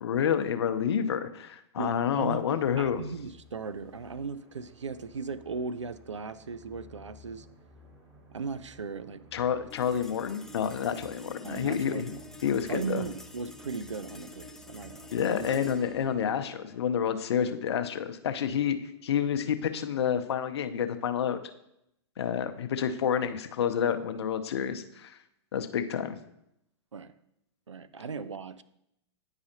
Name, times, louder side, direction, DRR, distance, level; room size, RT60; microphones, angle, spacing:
voice 1, 0.0-3.0 9.3-12.1 12.4-13.0 15.1-18.8 19.0-21.4 22.2-25.2 25.5-26.2, left 8 dB, 65° left, 9 dB, 0.6 m, -29 dB
voice 2, 1.8-2.4 2.8-7.5 8.3-9.2 11.4-12.2 12.7-15.5 16.3-16.4 26.9-27.1 27.7-28.6, right 5 dB, 85° right, 14 dB, 0.4 m, -37 dB
sound 1, 2.2-16.1, equal, 30° right, 2.0 m, -56 dB
sound 2, 9.7-20.3, left 1 dB, 5° left, 0.3 m, -50 dB
9.7 x 4.8 x 2.8 m, 0.81 s
figure-of-eight pair, 105°, 15 cm